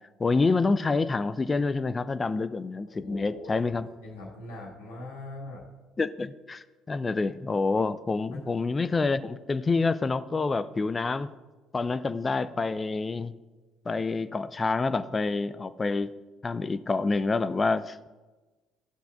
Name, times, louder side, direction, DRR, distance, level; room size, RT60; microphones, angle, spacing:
voice 1, 0.2-3.9 6.0-11.3 11.7-13.3 13.9-16.1 16.4-18.1, left 3 dB, 25° left, 14 dB, 0.4 m, -27 dB
voice 2, 2.9-5.6 8.3-8.5, left 2 dB, 70° left, -4 dB, 1.9 m, -42 dB
14.0 x 5.7 x 2.5 m, 1.2 s
figure-of-eight pair, 55°, 0 cm